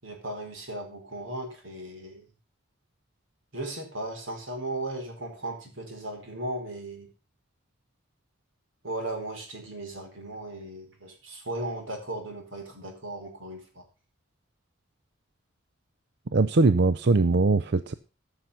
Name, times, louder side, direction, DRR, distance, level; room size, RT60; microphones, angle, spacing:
voice 1, 0.0-2.2 3.5-7.1 8.8-13.8, right 1 dB, 90° right, 3 dB, 4.7 m, -36 dB
voice 2, 16.3-17.9, right 3 dB, 55° right, 12 dB, 0.6 m, -21 dB
14.0 x 6.5 x 5.6 m, 0.34 s
head